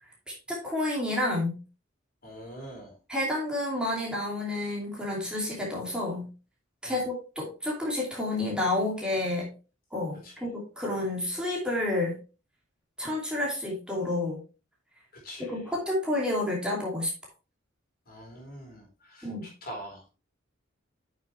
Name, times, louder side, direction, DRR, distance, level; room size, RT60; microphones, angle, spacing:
voice 1, 0.5-1.6 3.1-6.3 6.8-9.5 9.9-12.2 13.0-14.4 15.4-17.1 19.2-19.5, left 1 dB, 5° right, -4 dB, 2.7 m, -30 dB
voice 2, 2.2-3.0 6.8-7.0 10.2-10.4 15.1-15.7 18.1-20.1, equal, 50° left, 0 dB, 4.2 m, -44 dB
9.1 x 6.7 x 3.3 m, 0.32 s
head